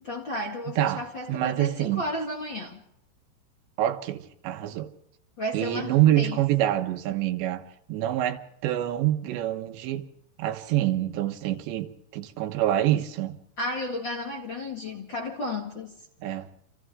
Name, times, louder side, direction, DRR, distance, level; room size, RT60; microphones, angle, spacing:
voice 1, 0.0-2.8 5.4-6.4 13.6-15.9, left 1 dB, 40° left, 1.9 m, -33 dB
voice 2, 0.8-2.0 3.8-4.9 5.5-10.1 10.4-13.4 16.2-16.5, right 13 dB, 85° right, 3.6 m, -26 dB
29.5 x 26.5 x 3.7 m
omnidirectional pair, 5.0 m